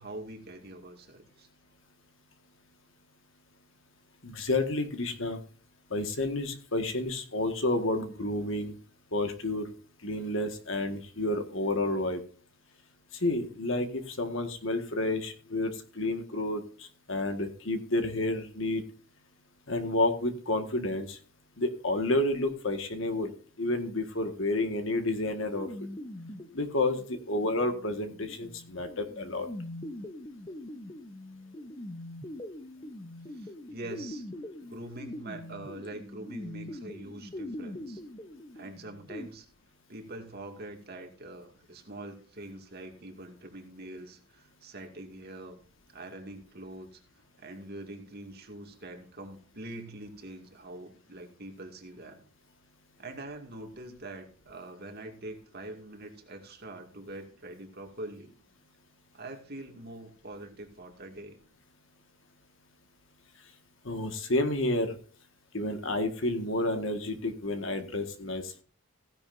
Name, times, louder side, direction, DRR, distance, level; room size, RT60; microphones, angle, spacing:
voice 1, 0.0-1.5 33.3-34.2 34.6-38.0 38.5-39.5 39.9-45.6 45.9-47.0 47.4-52.2 53.0-58.3 59.1-61.4, right 2 dB, 45° right, 3 dB, 2.3 m, -44 dB
voice 2, 4.2-5.4 5.9-8.7 9.1-9.7 10.0-12.2 13.2-16.6 17.1-18.8 19.7-21.2 21.6-23.3 23.6-25.7 26.5-29.5 63.9-65.0 65.5-68.6, left 2 dB, 60° left, 7 dB, 1.7 m, -30 dB
sound 1, 25.5-39.3, left 1 dB, 20° left, 0.9 m, -43 dB
15.5 x 10.5 x 2.7 m, 0.41 s
head